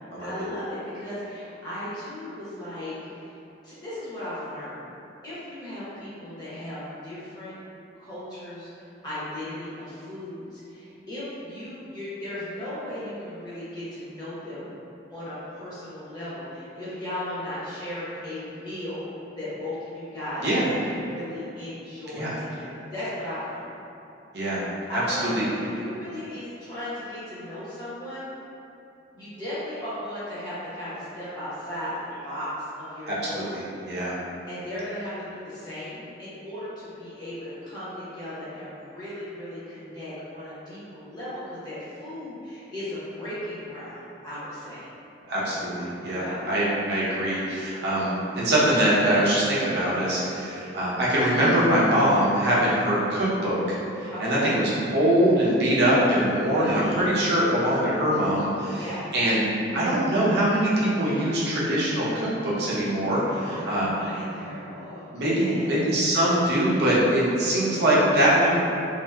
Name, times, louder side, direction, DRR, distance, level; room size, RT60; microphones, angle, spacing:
voice 1, 0.2-3.3 3.6-4.8 5.2-7.6 8.0-14.7 15.1-20.6 20.8-23.7 24.9-28.3 29.1-33.5 34.5-44.9 46.1-46.4 54.1-54.4 56.3-57.3 58.8-59.0 63.4-65.7, left 1 dB, 20° left, -12 dB, 0.9 m, -36 dB
voice 2, 24.3-25.4 33.1-33.6 33.9-34.1 45.3-58.8 59.1-59.5 59.7-64.0 65.1-68.6, right 1 dB, 60° right, -7 dB, 0.7 m, -23 dB
2.7 x 2.7 x 2.3 m, 2.8 s
head